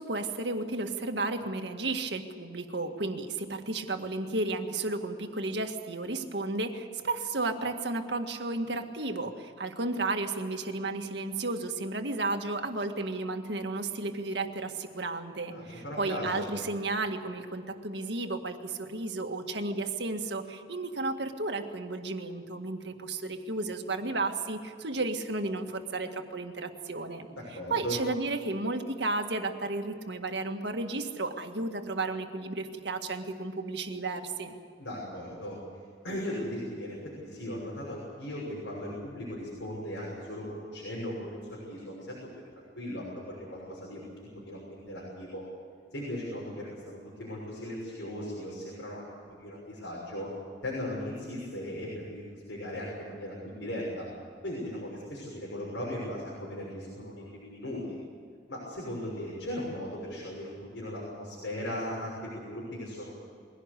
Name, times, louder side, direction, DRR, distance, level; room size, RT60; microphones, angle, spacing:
voice 1, 0.0-27.3 27.7-34.5, right 2 dB, 65° right, 5 dB, 1.9 m, -33 dB
voice 2, 15.5-16.5 27.3-28.0 34.8-35.6 36.0-42.2 42.7-45.4 45.9-49.0 49.4-50.3 50.6-54.1 54.4-58.0 58.5-63.2, left 1 dB, 85° left, -5 dB, 6.3 m, -38 dB
22.5 x 17.0 x 8.3 m, 2.3 s
head